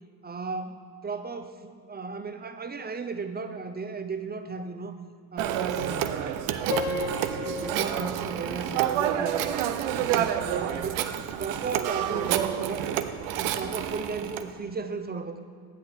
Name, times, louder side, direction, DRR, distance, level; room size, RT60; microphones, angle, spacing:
voice 1, 0.2-5.0 5.3-9.7 10.0-11.1 11.4-12.4 12.7-12.9 13.4-15.4, right 4 dB, 20° right, 8 dB, 0.6 m, -35 dB
Telephone, 5.4-14.5, right 10 dB, 85° right, 0.6 m, -29 dB
Piano, 6.7-9.7, left 5 dB, 90° left, 0.8 m, -36 dB
10.5 x 7.9 x 3.5 m, 2.1 s
supercardioid pair, 65°, 45 cm